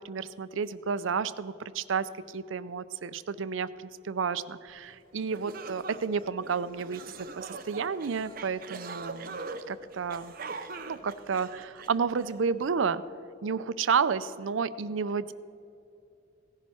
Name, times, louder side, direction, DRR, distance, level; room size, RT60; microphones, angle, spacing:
voice 1, 0.0-7.0 7.3-9.4 9.7-10.3 10.8-13.0 13.4-15.3, right 6 dB, 80° right, 15 dB, 0.5 m, -31 dB
sound 1, 4.9-5.0 5.3-12.4, right 4 dB, 45° right, 0.7 m, -42 dB
17.0 x 10.5 x 4.3 m, 2.8 s
head